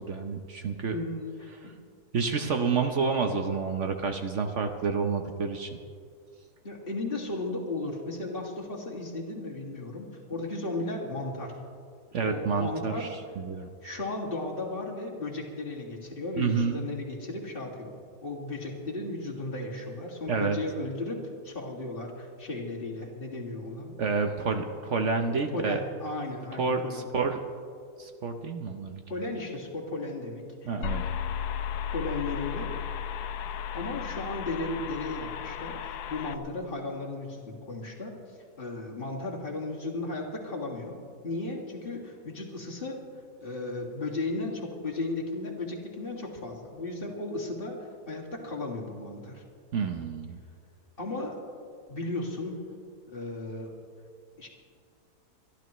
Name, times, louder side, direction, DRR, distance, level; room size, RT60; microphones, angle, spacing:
voice 1, 0.0-0.9 2.1-5.8 12.1-13.1 13.4-13.7 16.4-16.8 20.3-20.6 24.0-25.8 26.6-26.8 27.1-27.4 28.0-29.0 30.7-31.0 49.7-50.4, right 5 dB, 55° right, 5 dB, 1.0 m, -29 dB
voice 2, 0.9-1.7 6.6-11.5 12.2-13.1 13.8-17.9 18.2-23.9 24.4-24.8 25.5-27.3 29.1-30.8 31.9-32.7 33.7-41.0 41.2-43.0 43.4-49.4 51.0-51.4 51.9-52.6 53.1-53.7 54.4-54.5, left 2 dB, 35° left, -2 dB, 2.1 m, -35 dB
sound 1, 30.8-36.4, left 8 dB, 85° left, 1.2 m, -34 dB
26.0 x 12.0 x 3.1 m, 2.2 s
omnidirectional pair, 1.7 m